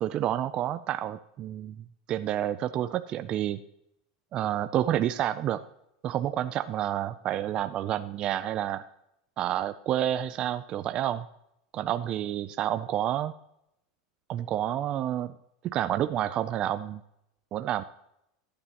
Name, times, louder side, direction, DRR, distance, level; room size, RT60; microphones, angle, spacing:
voice 1, 0.0-3.6 4.3-5.6 6.0-8.8 9.4-11.3 11.7-13.3 14.3-15.3 15.6-17.0 17.5-17.8, right 11 dB, 30° right, 10 dB, 0.4 m, -29 dB
14.0 x 9.7 x 2.9 m, 0.80 s
supercardioid pair, 150°, 3 cm